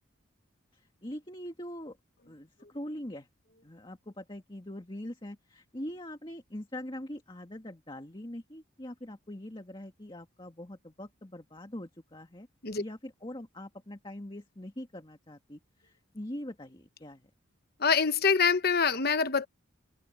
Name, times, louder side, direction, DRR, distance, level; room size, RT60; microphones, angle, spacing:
voice 1, 0.7-2.0 2.3-3.3 3.6-12.5 12.8-17.3, left 1 dB, 25° left, 2.0 m, -43 dB
voice 2, 17.8-19.5, left 5 dB, 50° left, 1.0 m, -25 dB
head